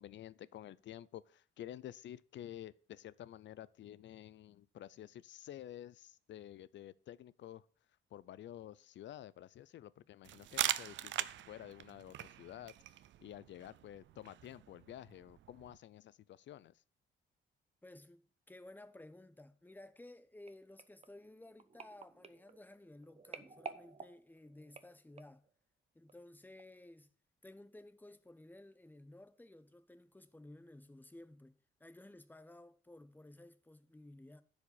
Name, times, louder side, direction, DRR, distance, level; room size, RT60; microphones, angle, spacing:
voice 1, 0.0-7.6 8.1-12.7 13.2-16.7, left 12 dB, 65° left, 0.6 m, -51 dB
sound 1, 10.3-15.8, right 13 dB, 70° right, 0.6 m, -42 dB
voice 2, 17.8-25.4 25.9-27.1 27.4-34.4, left 1 dB, 10° left, 1.0 m, -56 dB
sound 2, 20.5-25.5 26.1-26.3 26.6-26.7, right 5 dB, 30° right, 1.0 m, -52 dB
10.5 x 5.1 x 7.1 m
cardioid pair, 90°, 20 cm